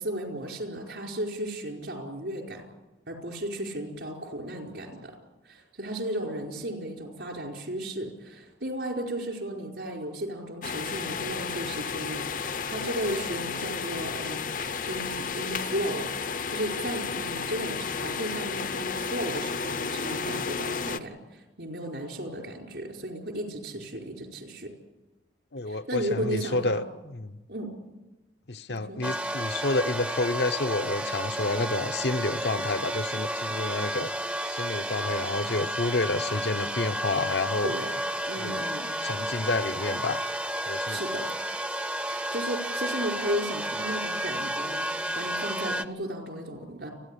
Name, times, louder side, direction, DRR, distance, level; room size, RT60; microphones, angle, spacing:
voice 1, 0.0-2.6 3.1-5.2 5.4-16.1 16.5-24.7 25.7-26.8 27.5-27.7 28.7-29.0 37.6-38.0 38.3-38.9 40.9-41.3 42.0-46.9, right 1 dB, 75° right, 2 dB, 4.8 m, -35 dB
sound 1, 10.6-21.0, left 5 dB, 50° left, 0.7 m, -32 dB
voice 2, 25.5-27.4 28.5-34.1 34.5-37.7 38.4-38.6 39.0-40.2 40.7-41.0, left 2 dB, 70° left, 9 dB, 0.9 m, -29 dB
sound 2, 29.0-45.8, right 1 dB, 5° right, 0.6 m, -32 dB
29.5 x 11.0 x 10.0 m, 1.1 s
head